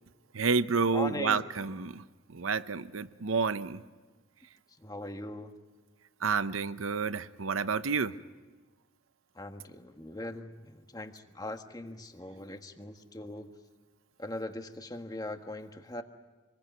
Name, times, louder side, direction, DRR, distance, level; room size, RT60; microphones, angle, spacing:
voice 1, 0.3-3.8 6.2-8.1, right 5 dB, 85° right, 14 dB, 0.8 m, -30 dB
voice 2, 0.9-1.4 4.8-5.5 9.3-13.5 14.2-16.0, left 1 dB, 20° left, 6 dB, 1.4 m, -40 dB
27.5 x 21.0 x 9.4 m, 1.3 s
head